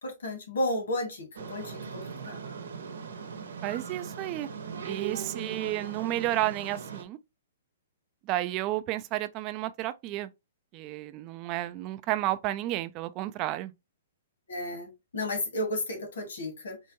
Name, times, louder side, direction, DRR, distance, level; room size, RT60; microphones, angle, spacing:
voice 1, 0.0-2.4 14.5-16.8, left 1 dB, 90° left, 1.5 m, -33 dB
sound 1, 1.3-7.0, right 6 dB, 85° right, 0.8 m, -39 dB
voice 2, 3.6-4.5 4.8-7.2 8.3-10.3 10.7-13.7, right 15 dB, 30° right, 0.3 m, -31 dB
4.4 x 2.2 x 2.8 m
hypercardioid pair, 155°, 0 cm